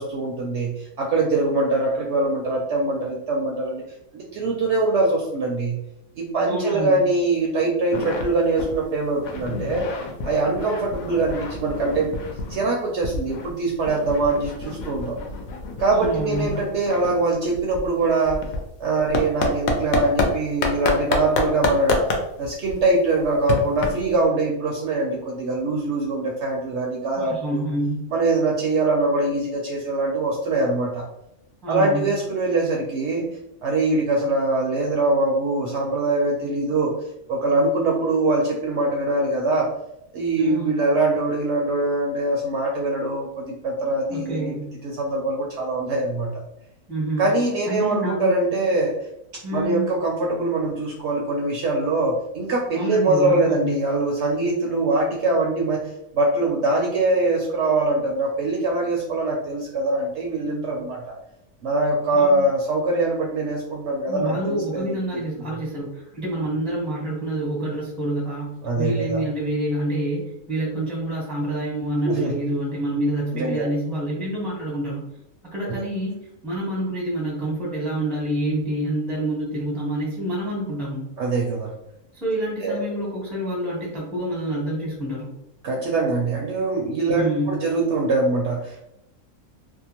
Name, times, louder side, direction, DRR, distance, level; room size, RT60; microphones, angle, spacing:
voice 1, 0.0-3.8 4.1-5.8 6.2-9.8 10.2-12.1 12.5-15.2 15.8-18.4 18.8-22.1 22.4-27.6 28.1-31.0 31.7-33.3 33.6-36.9 37.3-39.7 40.1-44.5 44.8-46.4 47.2-48.9 49.5-55.8 56.1-61.1 61.6-65.0 65.5-65.6 68.6-69.2 72.1-72.3 73.3-73.7 75.6-75.8 81.2-81.7 82.6-82.8 85.6-88.8, right 2 dB, 65° right, -1 dB, 0.7 m, -23 dB
voice 2, 6.5-7.0 16.0-16.6 27.1-28.1 31.6-32.1 40.4-40.8 44.1-44.7 46.9-47.3 47.7-48.3 49.4-49.9 52.8-53.7 62.1-62.5 64.1-75.0 75.4-81.0 82.1-85.3 87.1-87.6, right 1 dB, ahead, -4 dB, 0.5 m, -27 dB
sound 1, 7.9-8.3 8.6-8.8 9.1-12.7 13.0-20.3 20.6-24.2, left 3 dB, 75° left, 1.0 m, -28 dB
2.7 x 2.2 x 2.8 m, 0.81 s
omnidirectional pair, 1.5 m